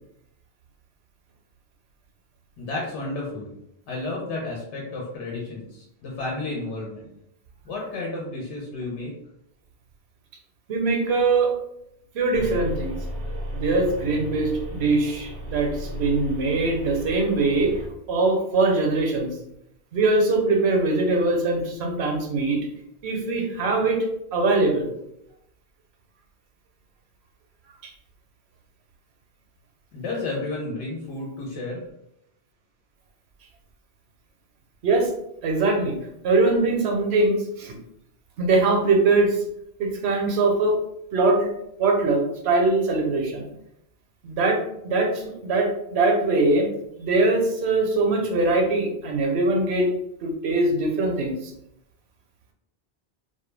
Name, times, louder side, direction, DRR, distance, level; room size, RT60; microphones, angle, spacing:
voice 1, 2.6-3.5 3.9-7.1 7.6-9.1 29.9-31.9, left 2 dB, 90° left, -3 dB, 0.9 m, -32 dB
voice 2, 10.7-11.5 12.1-13.0 13.5-17.8 18.1-19.4 19.9-22.6 23.0-24.0 24.3-24.9 27.8-27.9 34.8-35.1 35.4-36.0 36.2-37.7 38.4-39.4 39.8-40.7 41.1-41.5 41.8-43.5 44.2-46.7 47.0-49.9 50.2-51.5, right 3 dB, 75° right, 2 dB, 0.8 m, -22 dB
sound 1, 12.3-17.9, right 1 dB, 50° right, 0.6 m, -34 dB
2.2 x 2.1 x 3.1 m, 0.79 s
omnidirectional pair, 1.1 m